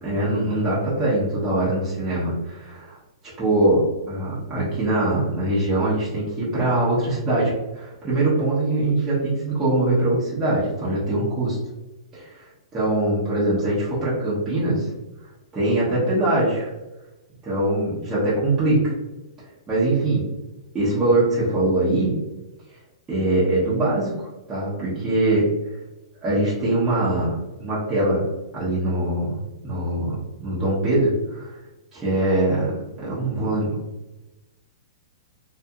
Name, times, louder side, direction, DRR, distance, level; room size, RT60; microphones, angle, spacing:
voice 1, 0.0-3.0 3.4-11.6 12.1-14.9 15.5-16.7 17.4-19.0 19.7-20.3 20.7-22.2 23.1-24.2 24.5-25.5 26.2-31.6 31.9-33.8, right 2 dB, 15° right, -10 dB, 0.9 m, -22 dB
2.7 x 2.4 x 2.7 m, 1.1 s
hypercardioid pair, 150°, 3 cm